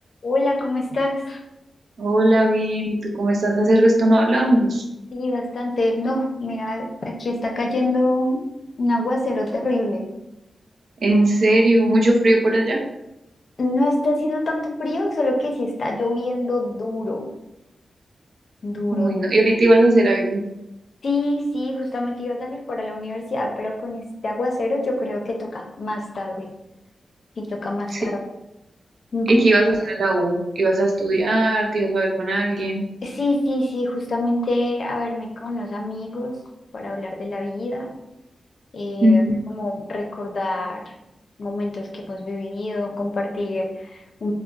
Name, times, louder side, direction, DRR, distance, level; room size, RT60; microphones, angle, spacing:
voice 1, 0.2-1.4 5.1-8.4 8.8-10.1 13.6-17.3 18.6-19.1 21.0-26.5 27.4-28.2 29.1-29.4 33.0-36.3 36.7-37.9 38.7-39.2 39.5-40.8 41.4-44.3, left 1 dB, 55° left, 1 dB, 0.5 m, -25 dB
voice 2, 2.0-4.8 11.0-12.8 18.9-20.4 27.9-28.0 29.3-32.8 39.0-39.4, right 1 dB, 65° right, 1 dB, 0.5 m, -18 dB
2.3 x 2.0 x 3.8 m, 0.89 s
wide cardioid pair, 120°, 0 cm